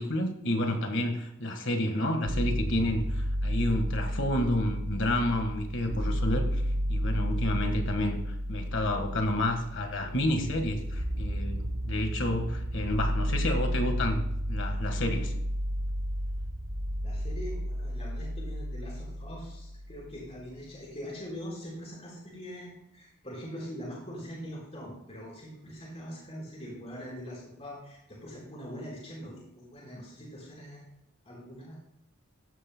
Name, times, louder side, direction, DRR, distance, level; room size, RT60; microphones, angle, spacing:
voice 1, 0.0-6.6 6.9-8.2 8.5-15.3, left 1 dB, 60° left, 6 dB, 1.6 m, -30 dB
sound 1, 2.3-20.2, equal, 80° right, 2.3 m, -32 dB
voice 2, 17.0-30.9 31.2-31.8, equal, 30° left, -5 dB, 4.6 m, -42 dB
14.5 x 12.5 x 2.2 m, 0.77 s
head